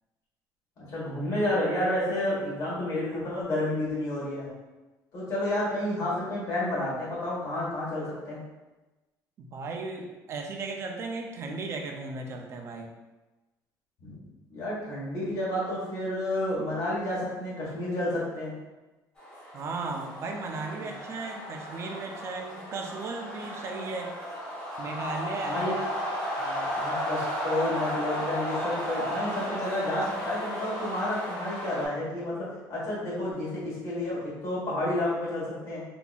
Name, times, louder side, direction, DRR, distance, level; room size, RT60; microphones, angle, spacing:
voice 1, 0.8-4.5 5.1-8.4 14.0-14.2 14.5-18.5 20.8-20.9 25.4-25.8 26.8-35.8, left 1 dB, 45° left, -7 dB, 1.4 m, -30 dB
voice 2, 9.4-12.9 19.5-24.1 24.8-25.7 26.4-26.7, right 3 dB, 35° right, 2 dB, 0.4 m, -36 dB
sound 1, 19.2-31.9, equal, 10° left, 1.0 m, -34 dB
3.7 x 2.8 x 2.4 m, 1.1 s
cardioid pair, 165°, 8 cm